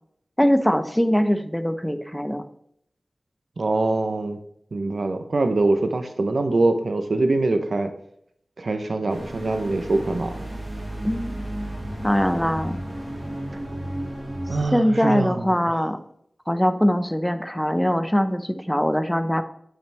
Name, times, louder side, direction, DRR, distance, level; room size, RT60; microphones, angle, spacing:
voice 1, 0.4-2.4 11.0-11.3 12.0-12.8 14.7-16.0 16.5-19.4, equal, 5° left, 9 dB, 0.9 m, -22 dB
voice 2, 3.6-4.4 4.7-7.9 8.6-10.5 14.5-15.8, right 2 dB, 75° right, 7 dB, 0.9 m, -24 dB
sound 1, 9.1-14.6, right 1 dB, 35° right, 2.9 m, -33 dB
8.9 x 8.9 x 3.5 m, 0.72 s
wide cardioid pair, 80°, 0 cm